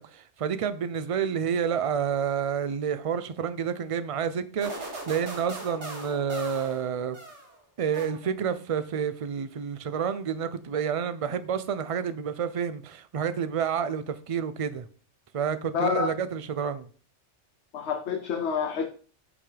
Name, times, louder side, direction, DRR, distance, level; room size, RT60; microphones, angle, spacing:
voice 1, 0.0-7.2 7.8-14.8 15.3-16.9, right 7 dB, 40° right, 0.5 m, -29 dB
sound 1, 4.6-7.6 7.9-8.6, right 2 dB, 75° right, 2.5 m, -40 dB
voice 2, 15.7-16.1 17.7-18.9, left 6 dB, 70° left, 1.0 m, -28 dB
8.7 x 5.7 x 3.3 m
omnidirectional pair, 1.2 m